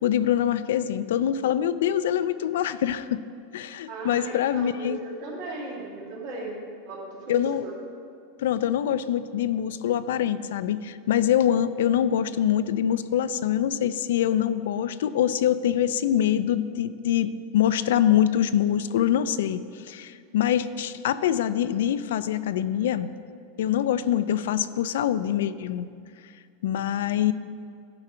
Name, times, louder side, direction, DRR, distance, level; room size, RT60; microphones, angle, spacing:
voice 1, 0.0-3.2 3.5-5.0 7.3-7.6 8.4-23.1 23.6-25.9 26.6-27.3, left 10 dB, 80° left, 14 dB, 0.3 m, -24 dB
voice 2, 3.9-6.6 6.9-7.7, right 2 dB, 55° right, -3 dB, 2.3 m, -36 dB
11.0 x 4.9 x 4.4 m, 2.3 s
supercardioid pair, 150°, 0 cm